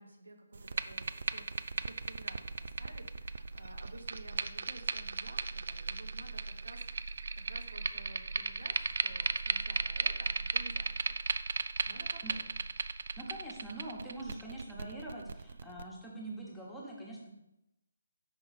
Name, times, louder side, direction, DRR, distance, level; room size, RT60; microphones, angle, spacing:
voice 1, 0.0-1.4 1.8-11.2 11.8-12.6, right 2 dB, 80° right, 3 dB, 1.2 m, -53 dB
sound 1, 0.5-15.8, right 4 dB, 55° right, 0.3 m, -36 dB
voice 2, 13.2-17.3, right 2 dB, 5° left, -5 dB, 1.1 m, -44 dB
5.8 x 5.1 x 4.1 m, 0.89 s
figure-of-eight pair, 145°, 0 cm